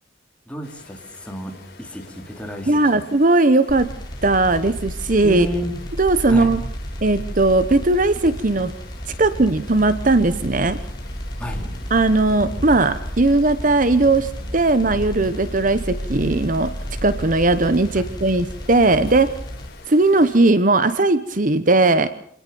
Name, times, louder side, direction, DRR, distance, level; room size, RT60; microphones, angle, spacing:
voice 1, 0.5-3.0 5.2-5.9 6.3-6.5 11.4-11.6 18.0-18.1, equal, 5° left, 2 dB, 3.8 m, -31 dB
Rain and thunder in the countryside, 0.6-20.5, left 1 dB, 55° left, 7.3 m, -42 dB
voice 2, 2.7-3.9 4.2-5.5 6.0-6.6 7.0-8.7 9.1-10.8 11.9-16.7 17.0-19.3 19.9-22.1, right 2 dB, 45° right, 13 dB, 1.0 m, -18 dB
sound 1, 3.7-19.7, equal, 25° left, 4.3 m, -32 dB
27.0 x 18.5 x 7.0 m, 0.64 s
head